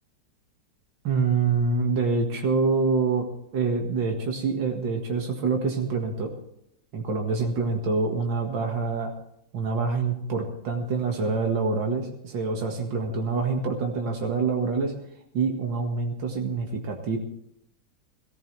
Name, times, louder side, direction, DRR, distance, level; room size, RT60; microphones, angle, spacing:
voice 1, 1.0-3.3 3.5-6.3 6.9-9.1 9.5-14.9 15.3-17.2, right 4 dB, 75° right, 2 dB, 2.5 m, -26 dB
20.5 x 14.0 x 3.4 m, 0.76 s
omnidirectional pair, 2.0 m